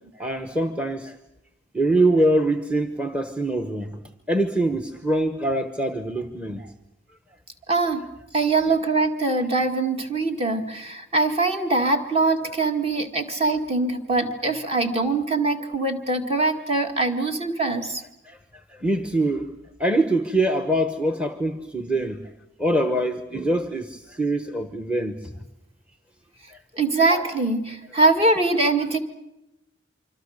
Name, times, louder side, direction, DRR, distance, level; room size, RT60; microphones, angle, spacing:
voice 1, 0.2-1.2 1.7-4.0 4.3-6.7 18.3-18.4 18.7-19.5 19.8-22.3 22.6-25.2 26.5-26.6, right 1 dB, 5° right, 1.0 m, -24 dB
voice 2, 7.7-8.1 8.3-18.0 26.8-29.0, right 3 dB, 30° right, 2.0 m, -23 dB
26.0 x 25.5 x 6.6 m
head